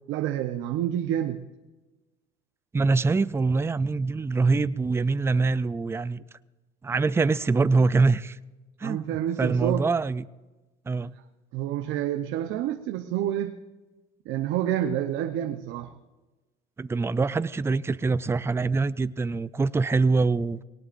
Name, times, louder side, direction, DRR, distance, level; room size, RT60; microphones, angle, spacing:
voice 1, 0.1-1.4 8.8-9.8 11.0-11.1 11.5-13.5 14.3-15.9, right 11 dB, 70° right, 0.9 m, -28 dB
voice 2, 2.7-6.2 6.8-8.4 8.8-10.3 10.9-11.1 16.8-20.6, right 4 dB, 10° right, 0.4 m, -24 dB
22.0 x 18.5 x 2.6 m
supercardioid pair, 105°, 21 cm